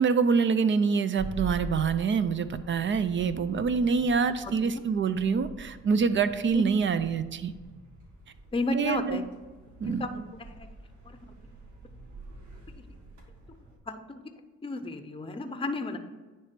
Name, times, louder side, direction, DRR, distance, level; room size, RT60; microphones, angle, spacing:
voice 1, 0.0-7.5 8.7-9.3 9.8-10.0, right 5 dB, 40° right, 12 dB, 0.5 m, -26 dB
sound 1, 1.2-13.8, right 2 dB, 70° right, 1.7 m, -45 dB
voice 2, 8.5-9.2 9.8-10.2 10.5-10.7 11.0-11.2 13.9-14.2 14.6-16.0, left 2 dB, 20° left, 8 dB, 0.7 m, -32 dB
9.6 x 3.3 x 5.9 m, 1.3 s
cardioid pair, 90°, 30 cm